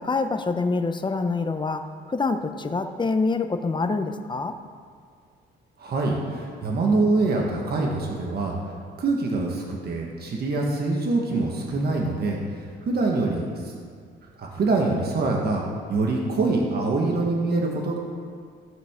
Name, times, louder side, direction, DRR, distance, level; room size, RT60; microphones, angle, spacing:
voice 1, 0.0-4.6, left 3 dB, 25° left, 8 dB, 0.7 m, -26 dB
voice 2, 5.8-8.6 9.0-12.4 12.8-13.7 14.4-15.6 15.9-18.0, right 3 dB, 55° right, -1 dB, 1.5 m, -24 dB
16.0 x 5.9 x 3.8 m, 2.1 s
cardioid pair, 90°, 20 cm